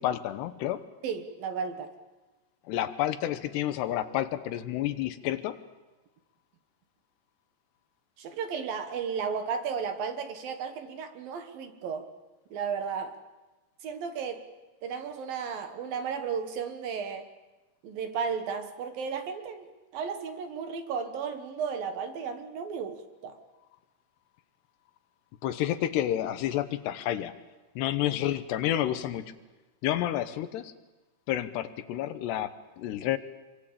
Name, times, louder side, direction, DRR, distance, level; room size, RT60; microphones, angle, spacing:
voice 1, 0.0-0.9 2.7-5.6 25.4-27.3 27.8-29.3 29.8-30.7 31.3-33.2, left 12 dB, 75° left, 12 dB, 3.1 m, -30 dB
voice 2, 1.0-1.9 8.2-12.1 12.5-13.2 13.8-14.4 14.8-17.3 17.8-23.4, right 6 dB, 65° right, 8 dB, 2.9 m, -34 dB
27.0 x 23.5 x 8.8 m, 1.2 s
omnidirectional pair, 5.0 m